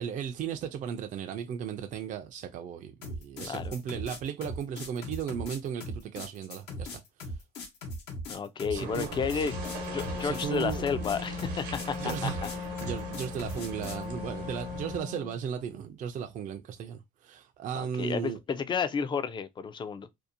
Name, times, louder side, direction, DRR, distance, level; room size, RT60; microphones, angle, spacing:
voice 1, 0.0-7.0 8.7-9.1 9.3-9.5 10.2-10.9 12.0-18.4, right 8 dB, 50° right, 0.4 m, -36 dB
sound 1, 3.0-14.0, left 1 dB, 80° left, 0.9 m, -39 dB
voice 2, 3.4-3.7 8.3-9.5 9.9-12.5 17.7-20.1, left 6 dB, 30° left, 0.3 m, -32 dB
sound 2, 8.7-15.0, right 2 dB, 85° right, 0.9 m, -41 dB
Wind instrument woodwind instrument, 9.4-15.4, left 6 dB, 50° left, 1.0 m, -39 dB
2.7 x 2.1 x 2.4 m
cardioid pair, 110°, 17 cm